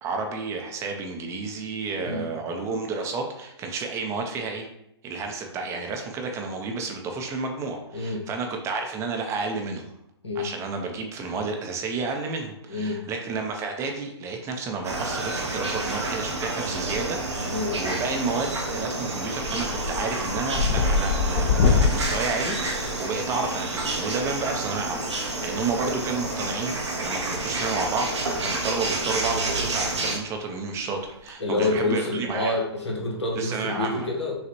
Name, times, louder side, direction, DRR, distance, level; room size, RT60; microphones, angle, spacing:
voice 1, 0.0-4.7 5.0-9.9 10.3-32.6 33.3-34.1, right 4 dB, 20° right, 3 dB, 0.6 m, -31 dB
voice 2, 2.0-2.3 7.9-8.3 10.2-10.5 12.7-13.0 17.5-17.8 31.4-34.3, left 2 dB, 90° left, -1 dB, 1.3 m, -27 dB
sound 1, 14.8-30.2, right 2 dB, 80° right, 1.0 m, -29 dB
sound 2, 16.7-17.3 17.6-18.1 18.5-18.8 19.1-23.5 24.9-25.0 26.3-27.1 27.3-27.6 28.1-28.2 28.4-28.5 28.9-29.1 29.4-29.5 31.0-31.3, left 5 dB, 40° left, 0.6 m, -26 dB
6.2 x 2.4 x 2.9 m, 0.81 s
hypercardioid pair, 125°, 14 cm